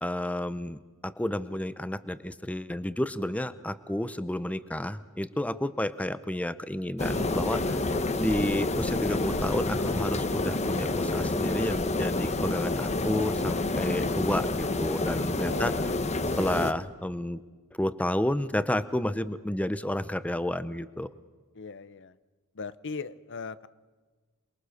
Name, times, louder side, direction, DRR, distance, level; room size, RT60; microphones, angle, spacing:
voice 1, 0.0-7.8 8.2-15.7 16.4-17.4 17.8-21.1, left 1 dB, 5° left, 14 dB, 0.6 m, -31 dB
sound 1, 7.0-16.7, left 2 dB, 30° left, 1.1 m, -28 dB
voice 2, 15.5-16.0 21.6-22.1 22.5-23.7, left 4 dB, 55° left, 15 dB, 0.8 m, -39 dB
28.0 x 22.0 x 6.5 m, 1.3 s
head